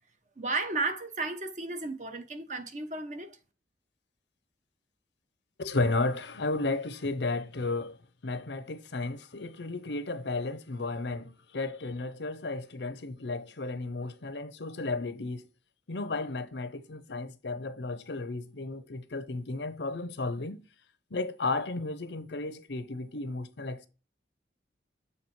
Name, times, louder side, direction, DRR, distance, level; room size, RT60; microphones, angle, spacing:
voice 1, 0.4-3.4, right 3 dB, 40° right, 0.9 m, -33 dB
voice 2, 5.6-8.0 8.2-15.4 15.9-20.7 21.1-23.9, left 3 dB, 75° left, 0.8 m, -33 dB
7.3 x 3.4 x 4.4 m
head